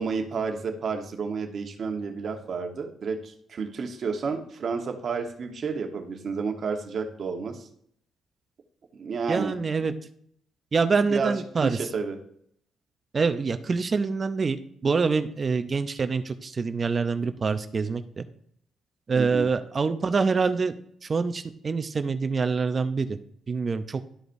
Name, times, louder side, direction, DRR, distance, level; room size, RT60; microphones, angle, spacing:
voice 1, 0.0-7.7 8.9-9.6 11.1-11.3 11.6-12.2 19.1-19.5, right 5 dB, 55° right, 4 dB, 1.2 m, -31 dB
voice 2, 9.3-9.9 10.7-11.8 13.1-18.2 19.1-20.7 21.0-23.2 23.5-24.0, right 4 dB, 35° right, 10 dB, 0.6 m, -25 dB
12.5 x 5.0 x 2.6 m, 0.67 s
cardioid pair, 90°, 0 cm